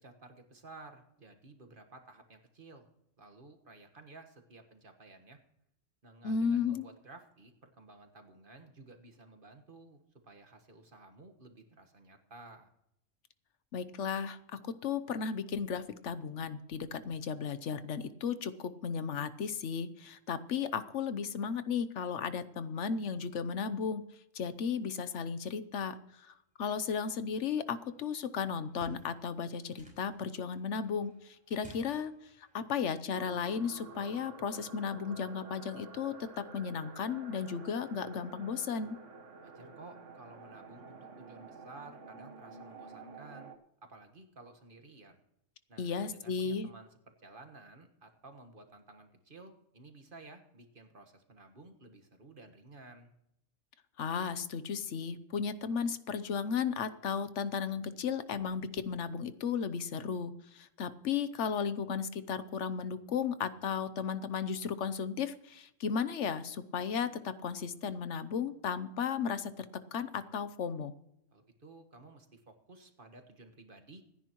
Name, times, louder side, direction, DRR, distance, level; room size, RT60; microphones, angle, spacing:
voice 1, 0.0-2.9 3.2-5.4 6.0-12.7 39.4-43.5 43.8-45.2 45.7-46.9 47.2-53.1 71.3-74.0, right 3 dB, 45° right, 6 dB, 1.6 m, -54 dB
voice 2, 6.2-6.9 13.7-24.0 24.3-32.1 32.4-39.0 45.8-46.7 54.0-69.6 69.9-70.9, left 6 dB, 70° left, 13 dB, 1.1 m, -35 dB
sound 1, 26.4-32.6, equal, 5° right, 5.2 m, -60 dB
sound 2, 33.1-43.6, right 3 dB, 75° right, 1.6 m, -50 dB
26.0 x 10.0 x 3.0 m, 0.82 s
omnidirectional pair, 1.3 m